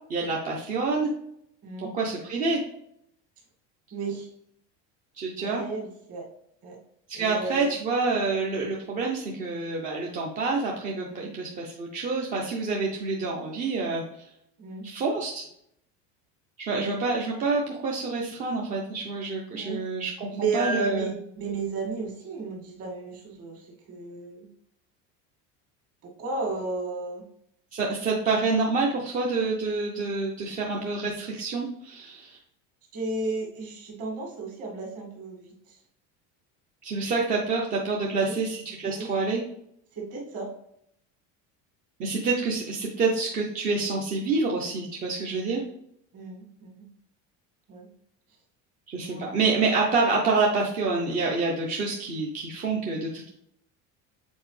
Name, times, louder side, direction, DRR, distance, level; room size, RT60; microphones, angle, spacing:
voice 1, 0.1-1.1 1.9-2.6 5.2-5.6 7.1-14.0 14.8-15.4 16.6-21.1 27.7-32.4 36.8-39.4 42.0-45.6 48.9-53.3, right 3 dB, 25° right, -2 dB, 0.5 m, -27 dB
voice 2, 3.9-4.3 5.4-6.3 6.6-6.8 7.1-7.8 11.1-11.3 14.6-14.8 16.7-17.0 19.5-19.8 20.3-24.5 26.0-27.2 32.9-35.8 38.1-38.4 38.8-39.1 39.9-40.5 46.1-46.8 47.7-47.9 49.1-49.3, right 3 dB, 40° right, -1 dB, 1.9 m, -33 dB
7.1 x 4.3 x 3.2 m, 0.73 s
cardioid pair, 180°, 36 cm